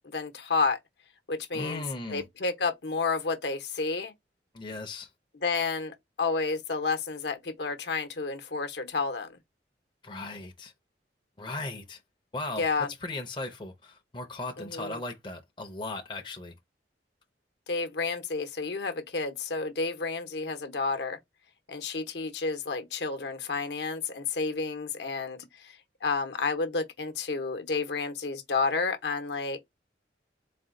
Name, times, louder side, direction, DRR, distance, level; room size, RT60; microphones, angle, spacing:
voice 1, 0.0-0.8 1.3-1.8 2.1-4.1 5.4-9.4 12.6-12.9 14.6-15.0 17.7-21.2 21.7-25.8 26.0-29.6, left 4 dB, 70° left, 0.8 m, -30 dB
voice 2, 1.5-2.2 4.5-5.1 10.0-10.7 11.4-12.0 12.3-12.6 13.0-16.5, left 2 dB, 25° left, 0.6 m, -37 dB
4.2 x 2.2 x 3.6 m
head